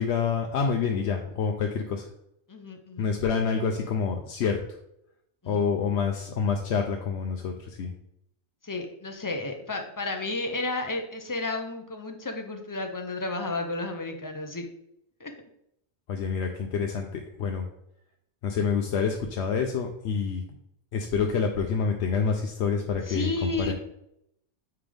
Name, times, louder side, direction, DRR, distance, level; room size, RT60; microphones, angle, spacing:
voice 1, 0.0-2.1 3.0-4.6 5.5-7.9 16.1-17.6 18.4-20.4 20.9-23.7, left 6 dB, 75° left, 3 dB, 0.9 m, -27 dB
voice 2, 2.5-3.1 5.4-5.6 8.6-14.7 15.2-15.3 23.1-23.7, left 2 dB, 20° left, 5 dB, 0.6 m, -32 dB
8.8 x 3.5 x 3.4 m, 0.77 s
omnidirectional pair, 1.1 m